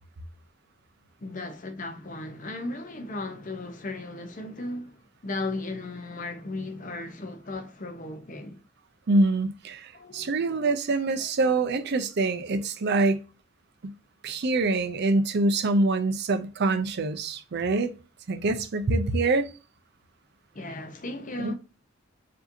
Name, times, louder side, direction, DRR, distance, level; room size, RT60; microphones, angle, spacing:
voice 1, 1.2-8.6 9.9-10.7 11.2-11.3 20.5-21.5, left 2 dB, 40° left, 0.7 m, -36 dB
voice 2, 9.1-13.2 13.8-13.9 14.2-17.9 18.3-19.5 21.4-21.5, right 2 dB, 55° right, 0.5 m, -25 dB
4.8 x 2.7 x 2.6 m
head